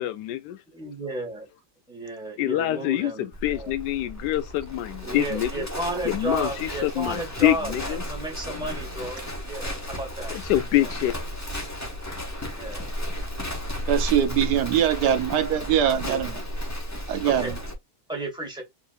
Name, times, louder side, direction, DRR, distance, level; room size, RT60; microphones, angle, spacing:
voice 1, 0.0-0.6 2.4-5.5 6.1-8.0 10.3-11.1, left 14 dB, 80° left, 1.2 m, -25 dB
voice 2, 0.7-1.5 1.9-3.7 5.0-10.3 10.7-10.9 12.6-12.8 16.0-16.3 17.2-17.5 18.1-18.6, right 1 dB, 5° right, 1.5 m, -33 dB
Livestock farm animals working animals, 3.3-17.7, equal, 15° left, 0.7 m, -33 dB
voice 3, 13.9-16.3 17.1-17.5, right 10 dB, 75° right, 1.2 m, -22 dB
4.5 x 3.3 x 2.5 m
omnidirectional pair, 1.8 m